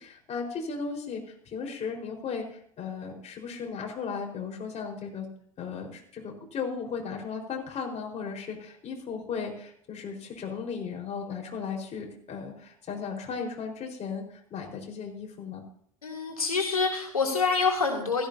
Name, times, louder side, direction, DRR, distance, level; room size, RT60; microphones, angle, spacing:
voice 1, 0.0-5.3 5.6-14.2 14.5-15.6, left 5 dB, 40° left, 1 dB, 4.5 m, -36 dB
voice 2, 16.0-18.3, left 4 dB, 90° left, 1 dB, 3.0 m, -26 dB
16.5 x 15.0 x 2.8 m, 0.65 s
figure-of-eight pair, 70°, 18 cm